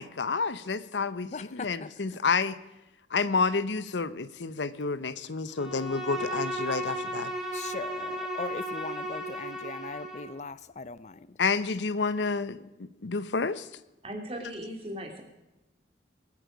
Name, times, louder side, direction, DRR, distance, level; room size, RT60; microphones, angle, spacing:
voice 1, 0.0-2.6 3.1-7.3 11.4-12.6 13.0-13.7, left 4 dB, 80° left, 0.8 m, -29 dB
voice 2, 1.3-1.9 7.5-11.2, left 4 dB, 40° left, 0.5 m, -39 dB
Bowed string instrument, 5.6-10.4, right 1 dB, 5° right, 1.9 m, -35 dB
voice 3, 14.0-15.2, equal, 30° right, 2.7 m, -38 dB
22.0 x 9.6 x 5.2 m
head